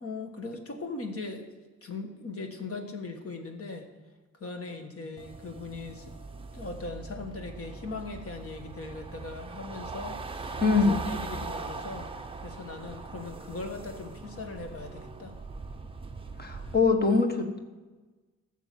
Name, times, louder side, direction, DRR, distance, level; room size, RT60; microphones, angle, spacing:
voice 1, 0.0-1.5 1.8-3.9 4.3-6.1 6.5-10.6 10.9-12.1 12.4-15.4, left 3 dB, 50° left, 5 dB, 1.7 m, -39 dB
sound 1, 5.2-16.8, right 3 dB, 20° right, 0.7 m, -40 dB
voice 2, 10.6-10.9 16.4-17.6, left 4 dB, 35° left, 5 dB, 1.5 m, -23 dB
15.0 x 7.1 x 7.6 m, 1.3 s
wide cardioid pair, 170°, 29 cm